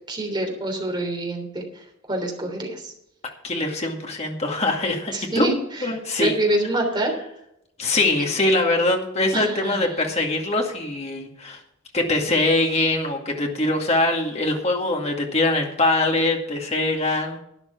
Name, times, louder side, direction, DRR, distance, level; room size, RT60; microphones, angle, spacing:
voice 1, 0.1-2.9 5.1-5.9 6.2-7.1 9.3-9.9, right 1 dB, 25° right, 2 dB, 3.2 m, -26 dB
voice 2, 3.4-5.5 5.8-6.4 7.8-11.6 11.9-17.4, left 2 dB, 35° left, 1 dB, 2.2 m, -23 dB
12.0 x 10.5 x 4.5 m, 0.78 s
head